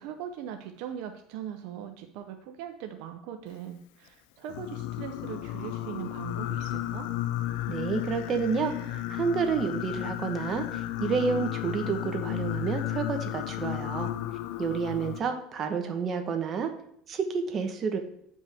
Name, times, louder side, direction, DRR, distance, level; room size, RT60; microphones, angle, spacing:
voice 1, 0.0-7.1, right 9 dB, 75° right, 6 dB, 0.7 m, -40 dB
Singing, 4.5-15.2, left 13 dB, 80° left, 0.3 m, -33 dB
voice 2, 7.7-14.1 14.6-16.7 17.1-18.0, right 5 dB, 40° right, 5 dB, 1.2 m, -30 dB
9.6 x 5.3 x 3.5 m, 0.70 s
supercardioid pair, 105°, 0 cm